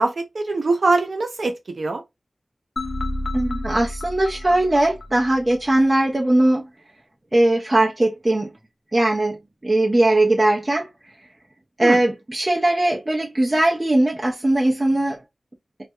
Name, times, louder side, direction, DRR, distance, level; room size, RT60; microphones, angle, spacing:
voice 1, 0.0-2.0 11.8-12.0, right 3 dB, 75° right, 0.6 m, -22 dB
sound 1, 2.8-5.8, left 1 dB, 90° left, 0.5 m, -30 dB
voice 2, 3.3-6.7 7.3-8.5 8.9-9.4 9.6-10.9 11.8-15.2, right 1 dB, 30° right, 0.5 m, -19 dB
2.3 x 2.1 x 2.7 m
wide cardioid pair, 70°, 0 cm